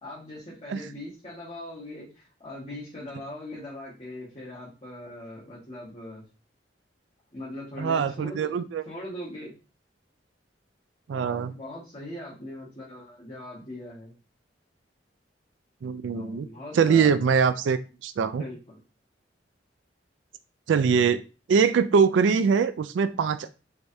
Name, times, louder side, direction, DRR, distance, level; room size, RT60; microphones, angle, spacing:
voice 1, 0.0-6.2 7.3-9.5 11.1-14.1 16.1-17.1 18.3-18.8, left 1 dB, 35° left, -8 dB, 1.5 m, -40 dB
voice 2, 7.8-8.8 11.1-11.5 15.8-16.5 16.7-18.4 20.7-21.2 21.5-23.5, right 6 dB, 85° right, 12 dB, 0.3 m, -23 dB
4.7 x 3.4 x 2.7 m, 0.33 s
head